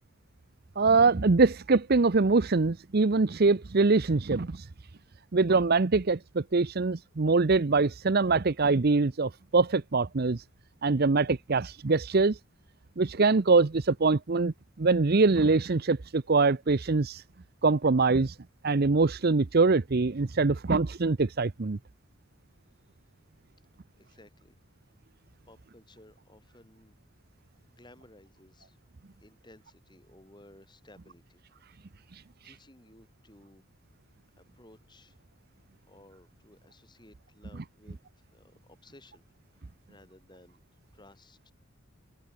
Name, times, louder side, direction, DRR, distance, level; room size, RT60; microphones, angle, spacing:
voice 1, 0.8-4.7 5.3-10.4 10.8-12.4 13.0-17.2 17.6-18.4 18.6-21.8 32.1-32.5, right 3 dB, 50° right, 0.7 m, -24 dB
voice 2, 24.0-24.6 25.1-25.2 25.5-26.9 27.5-28.8 29.2-31.4 31.7-33.6 34.4-35.2 35.9-39.2 39.5-40.6 40.9-41.5, left 1 dB, 20° left, 8.0 m, -57 dB
head